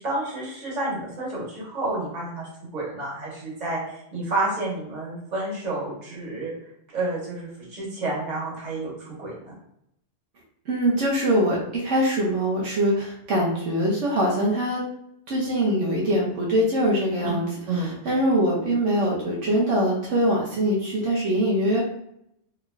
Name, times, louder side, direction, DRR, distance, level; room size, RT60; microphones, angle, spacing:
voice 1, 0.0-3.8 4.1-6.5 6.9-9.3 17.2-17.3 17.7-18.0, right 2 dB, 35° right, -5 dB, 1.3 m, -30 dB
voice 2, 10.7-14.8 15.3-17.5 17.7-21.8, equal, 75° right, -4 dB, 1.2 m, -23 dB
3.5 x 3.2 x 2.3 m, 0.75 s
omnidirectional pair, 1.3 m